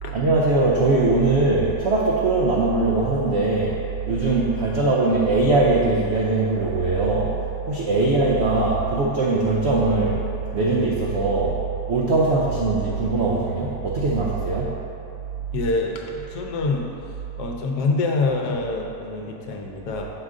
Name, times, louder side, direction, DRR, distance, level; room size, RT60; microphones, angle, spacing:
voice 1, 0.1-3.8 4.1-7.4 7.7-10.2 10.5-11.6 11.9-14.8, right 3 dB, 80° right, -4 dB, 0.6 m, -21 dB
voice 2, 15.5-16.9 17.4-20.1, left 3 dB, 70° left, 1 dB, 1.2 m, -25 dB
6.3 x 5.2 x 3.6 m, 2.8 s
omnidirectional pair, 1.9 m